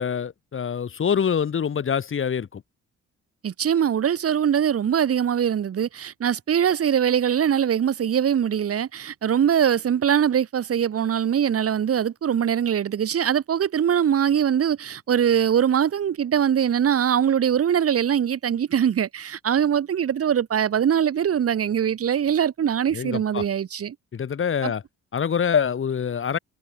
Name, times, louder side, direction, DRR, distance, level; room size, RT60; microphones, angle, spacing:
voice 1, 0.0-2.6 22.9-23.5 24.1-24.8 25.1-26.4, left 7 dB, 40° left, 2.1 m, -25 dB
voice 2, 3.4-24.0 24.6-24.7, right 9 dB, 50° right, 1.7 m, -22 dB
cardioid pair, 90°, 30 cm